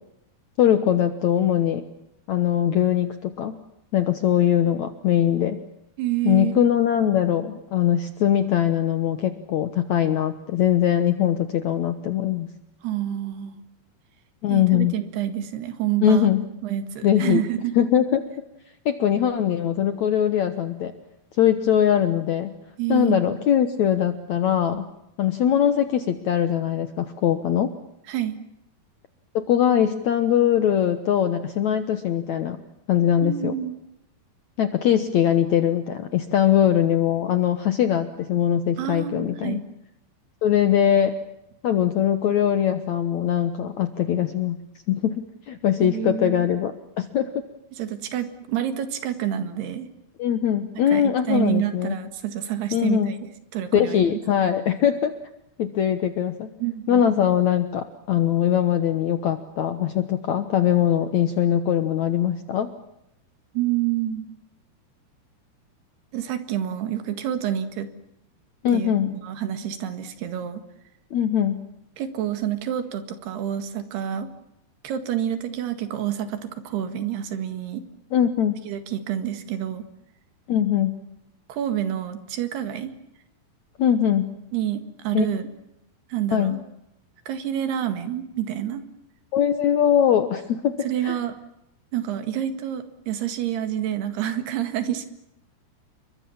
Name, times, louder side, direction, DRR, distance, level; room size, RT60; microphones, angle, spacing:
voice 1, 0.6-1.8 2.3-3.6 3.9-5.6 6.3-12.5 14.4-15.0 16.0-16.4 17.0-17.4 17.8-18.3 18.9-20.9 21.4-22.5 22.9-24.9 25.2-27.7 29.3-32.6 32.9-33.5 34.6-39.6 40.4-41.1 41.6-44.6 44.9-47.3 50.2-52.0 52.7-53.1 53.7-55.1 55.6-56.5 56.9-62.7 68.6-69.1 71.1-71.6 78.1-78.6 80.5-80.9 83.8-84.3 85.1-85.3 86.3-86.6 89.3-90.8 91.0-91.2, left 10 dB, 70° left, 9 dB, 1.8 m, -21 dB
voice 2, 6.0-6.6 12.8-13.6 14.5-16.3 16.6-17.7 22.8-23.3 28.1-28.4 33.2-33.8 38.8-39.6 45.8-46.5 47.7-49.9 50.9-53.2 53.5-54.2 56.6-57.0 63.5-64.3 66.1-67.9 68.7-69.0 69.2-70.6 72.0-74.3 74.8-77.8 78.7-79.9 81.5-82.9 84.5-85.5 86.1-86.6 87.3-88.8 90.8-91.4 91.9-95.1, right 11 dB, 75° right, 9 dB, 3.9 m, -28 dB
29.0 x 23.5 x 7.2 m, 0.84 s
omnidirectional pair, 4.7 m